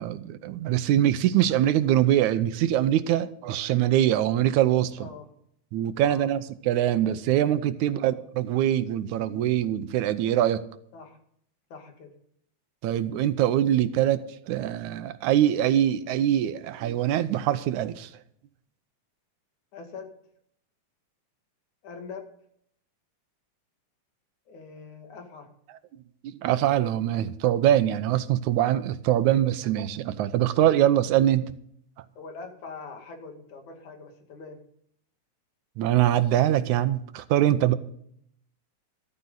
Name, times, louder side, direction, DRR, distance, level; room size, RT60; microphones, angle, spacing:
voice 1, 0.0-5.1 5.7-10.6 12.8-18.1 26.2-31.5 35.8-37.8, right 12 dB, 85° right, 2.2 m, -23 dB
voice 2, 11.7-12.2 19.7-20.1 21.8-22.3 24.5-25.5 32.2-34.6, left 4 dB, 80° left, 3.7 m, -43 dB
14.0 x 13.5 x 3.9 m
omnidirectional pair, 3.4 m